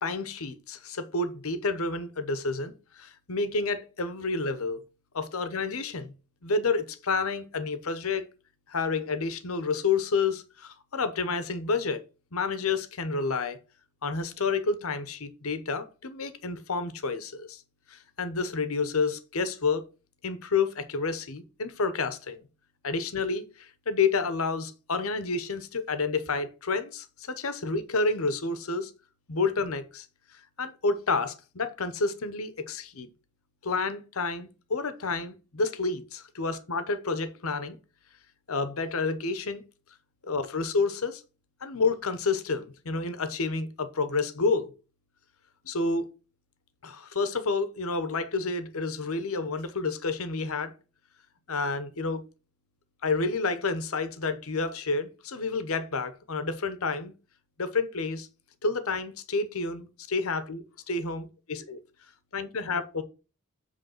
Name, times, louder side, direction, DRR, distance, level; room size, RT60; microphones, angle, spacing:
voice 1, 0.0-4.8 5.1-6.1 6.4-8.2 8.7-12.0 12.3-13.6 14.0-17.6 17.9-19.8 20.2-22.4 22.8-28.9 29.3-30.1 30.3-33.1 33.6-37.8 38.5-39.6 40.3-41.2 41.6-44.7 45.6-46.1 46.8-50.7 51.5-52.2 53.0-57.1 57.6-58.3 58.6-61.8 62.3-63.0, left 4 dB, 65° left, 0.9 m, -29 dB
7.8 x 3.5 x 6.5 m
head